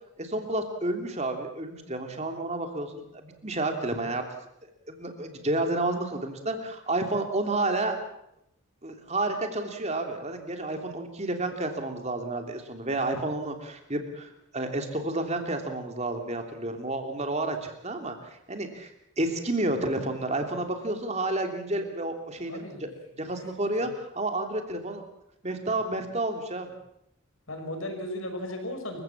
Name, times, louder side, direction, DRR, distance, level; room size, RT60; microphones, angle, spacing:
voice 1, 0.2-4.2 4.6-8.0 8.8-18.9 19.2-22.9 23.2-25.0 25.4-26.7, right 2 dB, 30° right, 5 dB, 3.1 m, -30 dB
voice 2, 22.5-22.9 23.8-23.9 27.5-29.0, left 1 dB, 75° left, 4 dB, 5.8 m, -35 dB
28.0 x 16.0 x 7.4 m, 0.76 s
head